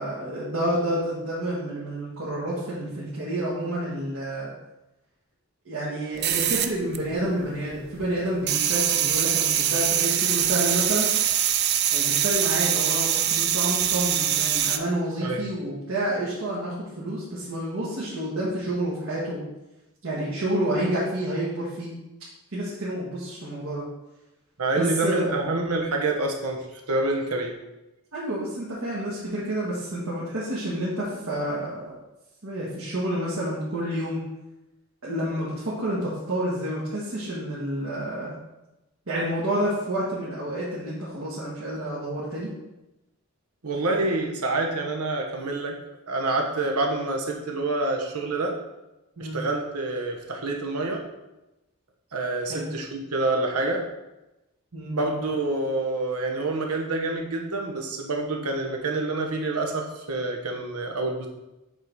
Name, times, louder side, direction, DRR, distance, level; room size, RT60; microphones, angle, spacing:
voice 1, 0.0-4.5 5.7-11.1 11.9-19.4 20.0-21.9 22.5-23.8 24.8-25.4 28.1-31.9 32.4-34.2 35.0-38.3 39.1-42.5 49.2-49.4 52.5-52.7 54.7-54.9, right 1 dB, 70° right, -8 dB, 1.8 m, -29 dB
sound 1, 6.2-7.5 7.7-14.8, right 10 dB, 45° right, 0.4 m, -23 dB
voice 2, 24.6-27.5 43.6-45.8 46.1-48.6 49.2-51.0 52.1-53.8 54.9-61.3, right 2 dB, 90° right, 1 dB, 1.2 m, -27 dB
7.9 x 3.8 x 4.7 m, 0.97 s
head